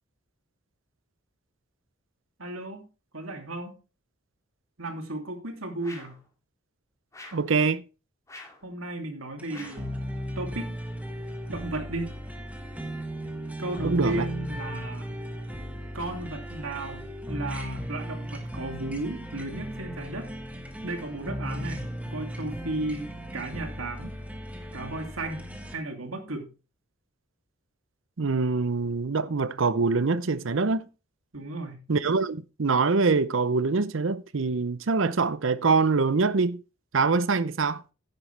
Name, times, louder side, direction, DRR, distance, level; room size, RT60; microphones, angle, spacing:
voice 1, 2.4-2.9 3.1-3.8 4.8-6.2 8.6-10.0 10.4-10.7 11.5-12.1 13.6-15.1 15.9-20.3 20.8-24.2 24.7-26.5 31.3-31.9, right 2 dB, 80° right, 2.7 m, -35 dB
sound 1, 5.8-6.2 7.1-7.5 8.3-8.7 9.5-9.9, left 2 dB, 15° left, 2.4 m, -46 dB
voice 2, 7.3-7.8 13.8-14.3 28.2-30.9 31.9-36.6 36.9-37.8, right 4 dB, 65° right, 0.7 m, -24 dB
sound 2, 9.4-25.7, equal, 5° right, 1.5 m, -36 dB
10.5 x 9.6 x 3.3 m
head